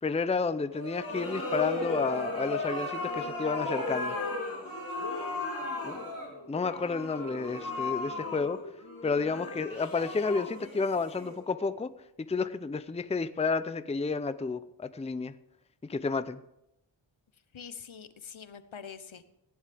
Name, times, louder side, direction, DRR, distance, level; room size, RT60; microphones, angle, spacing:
voice 1, 0.0-4.2 5.8-6.0 6.5-8.6 9.0-11.9 12.2-15.3 15.9-16.4, left 4 dB, 15° left, 13 dB, 0.5 m, -31 dB
sound 1, 0.7-11.7, left 2 dB, 45° left, 3.2 m, -36 dB
voice 2, 17.5-19.2, left 7 dB, 75° left, 12 dB, 0.9 m, -45 dB
15.5 x 10.5 x 3.5 m, 0.84 s
wide cardioid pair, 65°, 48 cm